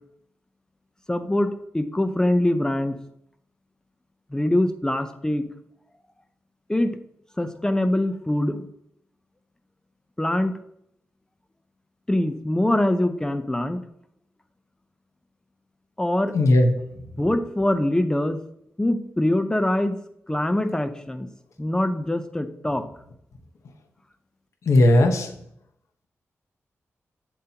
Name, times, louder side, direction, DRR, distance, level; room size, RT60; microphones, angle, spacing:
voice 1, 1.1-3.0 4.3-5.5 6.7-7.0 7.4-8.6 10.2-10.5 12.1-13.8 16.0-16.3 17.2-18.4 18.8-20.0 20.3-21.3 21.6-22.8, left 1 dB, 15° left, 10 dB, 0.7 m, -23 dB
voice 2, 16.3-16.7 24.7-25.3, left 1 dB, 85° left, 5 dB, 1.1 m, -16 dB
7.5 x 7.4 x 2.9 m, 0.73 s
cardioid pair, 80°, 5 cm